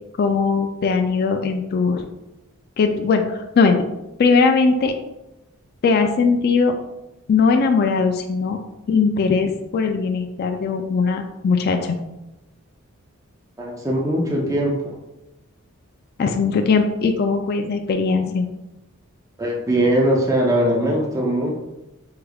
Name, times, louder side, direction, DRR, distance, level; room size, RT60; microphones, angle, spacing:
voice 1, 0.2-2.1 2.8-3.8 4.2-4.9 5.8-6.7 7.3-8.6 8.9-12.0 16.2-18.4, left 4 dB, 45° left, 5 dB, 0.3 m, -19 dB
voice 2, 13.6-15.0 19.4-21.5, right 1 dB, 15° right, -1 dB, 0.5 m, -20 dB
4.7 x 3.4 x 2.3 m, 0.95 s
head